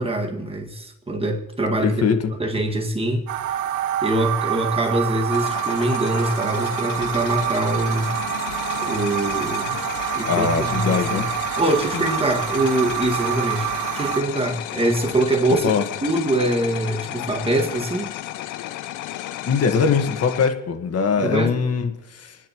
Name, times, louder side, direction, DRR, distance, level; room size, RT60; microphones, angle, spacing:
voice 1, 0.0-3.3 4.0-8.1 8.8-9.8 10.2-11.3 11.6-13.7 13.9-15.7 16.0-18.1 21.2-21.6, right 1 dB, 20° right, 2 dB, 2.0 m, -23 dB
voice 2, 1.8-2.3 10.3-11.3 11.9-12.1 15.6-15.8 19.4-22.4, left 6 dB, 55° left, 6 dB, 1.6 m, -22 dB
sound 1, 3.3-14.2, right 11 dB, 90° right, 0.8 m, -27 dB
sound 2, 5.3-20.5, left 14 dB, 85° left, 0.6 m, -33 dB
27.0 x 10.0 x 3.1 m, 1.1 s
cardioid pair, 90°, 30 cm